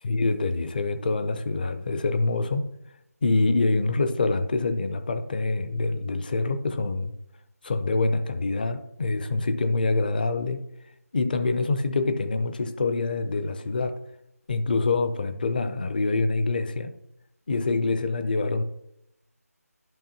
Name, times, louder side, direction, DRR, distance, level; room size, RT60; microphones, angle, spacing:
voice 1, 0.0-2.7 3.2-7.1 7.6-10.6 11.1-14.0 14.5-16.9 17.5-18.6, left 3 dB, 35° left, 11 dB, 0.6 m, -25 dB
11.0 x 5.1 x 2.9 m, 0.82 s
figure-of-eight pair, 165°, 9 cm